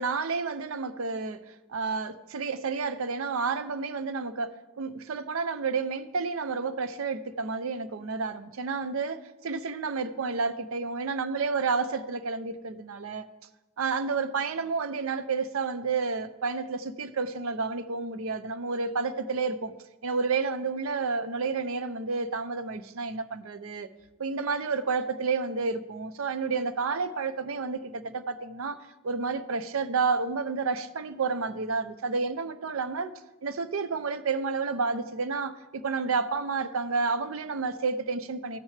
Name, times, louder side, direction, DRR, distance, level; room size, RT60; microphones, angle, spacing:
voice 1, 0.0-13.3 13.8-19.7 20.0-23.9 24.2-33.1 33.4-38.6, right 4 dB, 80° right, 0.6 m, -30 dB
15.5 x 6.3 x 3.3 m
head